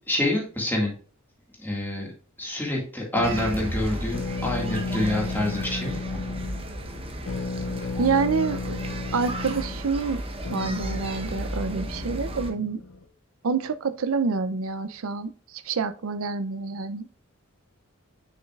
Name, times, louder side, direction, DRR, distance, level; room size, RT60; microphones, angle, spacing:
voice 1, 0.1-0.9 1.6-2.1 2.4-5.9, left 1 dB, 10° left, -2 dB, 1.9 m, -27 dB
sound 1, 3.1-13.0, left 4 dB, 70° left, 0.5 m, -35 dB
sound 2, 3.2-12.5, right 1 dB, 25° right, 0.8 m, -34 dB
voice 2, 8.0-8.8 9.1-10.2 10.5-12.8 13.4-15.3 15.7-17.1, right 4 dB, 80° right, 12 dB, 0.5 m, -27 dB
6.5 x 6.2 x 2.4 m, 0.42 s
head